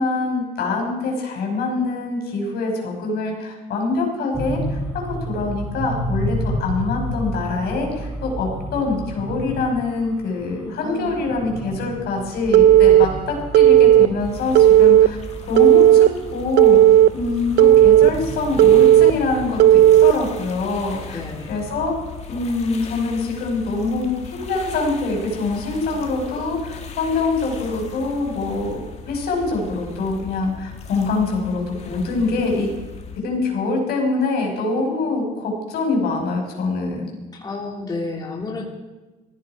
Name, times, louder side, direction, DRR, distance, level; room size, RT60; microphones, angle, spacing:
voice 1, 0.0-4.8 5.3-15.2 15.5-16.8 17.1-21.2 21.5-22.0 22.3-28.8 29.1-32.7 33.2-37.1, left 3 dB, 70° left, 1 dB, 5.4 m, -24 dB
sound 1, 4.3-22.2, equal, 10° right, 5.9 m, -32 dB
voice 2, 10.8-11.2 12.9-13.3 21.1-21.5 37.3-38.6, left 3 dB, 25° left, -2 dB, 3.0 m, -31 dB
Telephone, 12.5-13.0 13.5-14.1 14.5-15.1 15.6-16.1 16.6-17.1 17.6-18.1 18.6-19.1 19.6-20.1, right 12 dB, 75° right, 0.5 m, -11 dB
sound 2, 14.2-33.2, left 5 dB, 40° left, 2.2 m, -38 dB
19.5 x 14.5 x 4.9 m, 1.2 s
cardioid pair, 110°, 17 cm